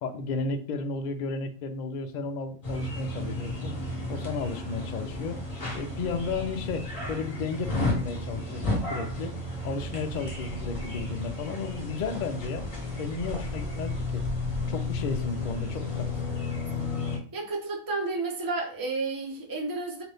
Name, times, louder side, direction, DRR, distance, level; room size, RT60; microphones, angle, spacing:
voice 1, 0.0-3.8 4.1-5.4 5.7-9.4 9.6-12.7 13.0-14.2 14.7-16.1, left 4 dB, 80° left, 0.4 m, -33 dB
sound 1, 2.6-17.2, left 2 dB, 25° left, 1.0 m, -33 dB
voice 2, 17.3-20.0, right 3 dB, 20° right, 0.6 m, -31 dB
3.8 x 2.5 x 3.4 m
omnidirectional pair, 1.5 m